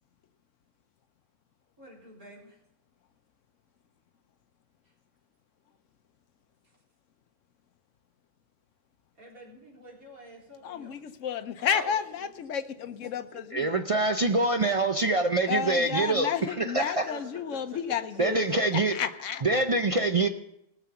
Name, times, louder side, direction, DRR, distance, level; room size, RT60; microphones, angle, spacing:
voice 1, 1.8-2.6 9.2-11.0 11.6-11.9 12.2-12.3 13.0-13.1 17.1-17.2, right 2 dB, 80° right, -4 dB, 4.3 m, -46 dB
voice 2, 10.6-13.8 15.5-18.6 18.9-19.4, left 8 dB, 65° left, 10 dB, 1.1 m, -31 dB
voice 3, 13.5-17.1 18.2-19.0 19.4-20.3, right 2 dB, 65° right, 6 dB, 0.3 m, -25 dB
19.0 x 7.1 x 5.8 m, 0.79 s
omnidirectional pair, 1.5 m